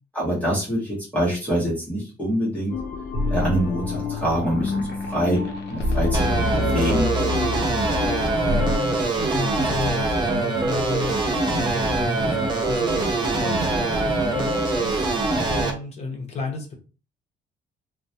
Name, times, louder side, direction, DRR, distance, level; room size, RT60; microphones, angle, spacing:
voice 1, 0.1-2.7 3.3-5.4 5.7-7.1, equal, 10° left, -7 dB, 0.8 m, -25 dB
sound 1, 2.7-8.8, left 3 dB, 75° left, 0.5 m, -27 dB
sound 2, 6.1-15.7, right 2 dB, 25° right, 0.4 m, -23 dB
voice 2, 8.3-11.1 11.5-15.0 15.5-16.7, left 3 dB, 40° left, 1 dB, 0.7 m, -32 dB
2.2 x 2.1 x 2.7 m, 0.33 s
cardioid pair, 160°, 18 cm